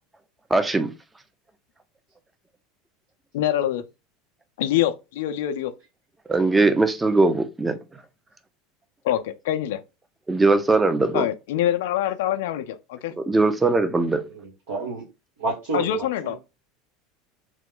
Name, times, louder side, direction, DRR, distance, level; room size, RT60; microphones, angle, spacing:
voice 1, 0.5-0.9 6.3-7.8 10.3-11.3 13.2-14.2, right 3 dB, 15° right, 0.5 m, -20 dB
voice 2, 3.3-3.8 4.6-5.7 9.0-9.8 11.1-13.1 15.7-16.4, left 11 dB, 75° left, 0.4 m, -25 dB
voice 3, 14.3-15.1 15.4-16.4, right 3 dB, 80° right, 1.1 m, -30 dB
3.0 x 2.1 x 3.7 m
hypercardioid pair, 95°, 0 cm